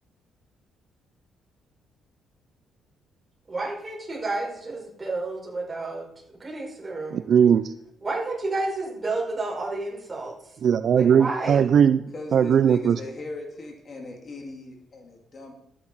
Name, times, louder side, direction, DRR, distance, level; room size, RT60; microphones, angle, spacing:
voice 1, 3.5-7.2 8.0-10.3 10.9-11.6, right 2 dB, 25° right, -3 dB, 6.2 m, -31 dB
voice 2, 7.1-7.7 10.6-12.0 12.3-13.0, right 8 dB, 60° right, 12 dB, 0.5 m, -19 dB
voice 3, 12.1-15.5, left 2 dB, 40° left, 1 dB, 2.9 m, -39 dB
12.5 x 10.0 x 4.8 m, 0.80 s
cardioid pair, 90°, 0 cm